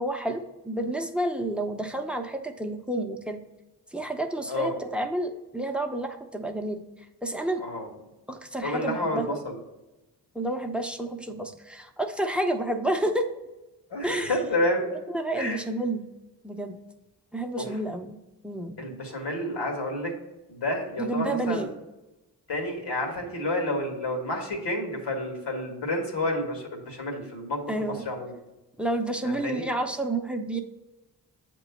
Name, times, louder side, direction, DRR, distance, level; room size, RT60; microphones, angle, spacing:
voice 1, 0.0-3.4 3.9-6.8 7.2-7.6 8.3-9.4 10.3-13.3 14.0-14.4 15.1-16.0 16.4-16.8 17.3-18.2 18.4-18.8 21.0-21.8 27.7-28.0 28.8-30.6, right 1 dB, 5° right, 5 dB, 0.7 m, -30 dB
voice 2, 4.5-4.8 7.6-7.9 8.6-9.6 13.9-14.9 15.3-15.6 17.6-17.7 18.8-20.1 20.5-21.7 22.5-28.3 29.2-29.6, left 1 dB, 80° left, 2 dB, 1.6 m, -30 dB
7.8 x 3.0 x 5.7 m, 1.0 s
cardioid pair, 55°, 42 cm